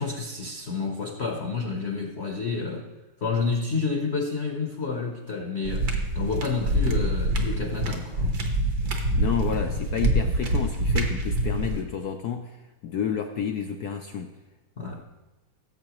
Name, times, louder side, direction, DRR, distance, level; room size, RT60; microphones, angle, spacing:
voice 1, 0.0-2.9 3.2-8.3 14.8-15.0, left 4 dB, 50° left, 2 dB, 0.8 m, -29 dB
sound 1, 5.7-11.8, right 1 dB, 55° right, 1.6 m, -25 dB
voice 2, 8.8-12.6 12.8-14.3, left 8 dB, 80° left, 5 dB, 0.9 m, -30 dB
17.0 x 7.5 x 3.0 m, 1.1 s
omnidirectional pair, 2.3 m